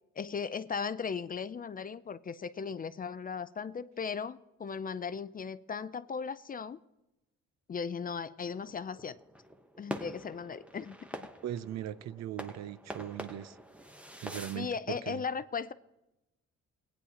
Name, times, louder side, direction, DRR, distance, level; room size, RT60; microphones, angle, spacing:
voice 1, 0.2-6.8 7.7-9.2 9.8-11.3 14.5-15.7, left 6 dB, 30° left, 0.4 m, -37 dB
sound 1, 8.5-14.7, right 1 dB, 5° right, 0.9 m, -45 dB
voice 2, 11.4-13.6 14.2-15.2, right 11 dB, 60° right, 0.5 m, -39 dB
16.5 x 9.7 x 2.9 m
cardioid pair, 90°, 30 cm